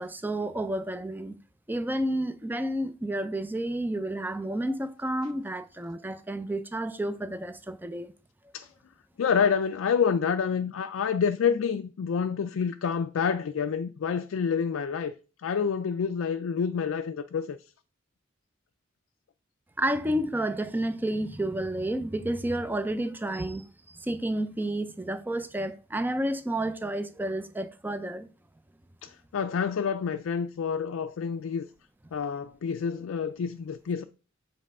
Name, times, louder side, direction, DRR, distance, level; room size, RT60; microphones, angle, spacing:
voice 1, 0.0-1.4 1.7-8.1 19.8-28.3, right 1 dB, 10° right, 0.5 m, -30 dB
voice 2, 9.2-15.1 15.4-17.6 29.0-31.7 32.1-34.0, left 6 dB, 75° left, 0.4 m, -28 dB
7.4 x 3.2 x 5.3 m
head